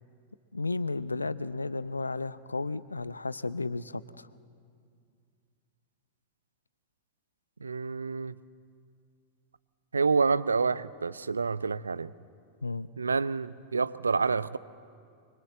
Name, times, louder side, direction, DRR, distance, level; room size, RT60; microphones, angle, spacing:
voice 1, 0.5-4.3 12.6-12.9, left 3 dB, 80° left, 0.6 m, -33 dB
voice 2, 7.6-8.4 9.9-12.1 13.0-14.6, right 4 dB, 75° right, 0.6 m, -28 dB
25.0 x 23.0 x 7.7 m
figure-of-eight pair, 90°, 0 cm